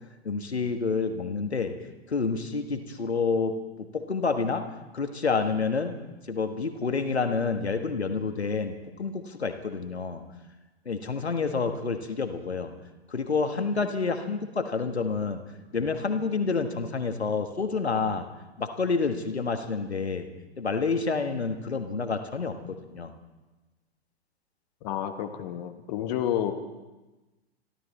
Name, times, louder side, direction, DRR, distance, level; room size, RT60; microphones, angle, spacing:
voice 1, 0.2-1.7 2.1-4.6 4.9-6.0 6.3-10.2 10.8-12.7 13.1-15.4 15.7-18.3 18.6-20.3 20.6-23.1, left 4 dB, 80° left, 7 dB, 1.4 m, -28 dB
voice 2, 24.8-26.5, left 10 dB, 40° left, 6 dB, 1.3 m, -30 dB
27.0 x 12.5 x 4.2 m, 1.1 s
figure-of-eight pair, 105°, 32 cm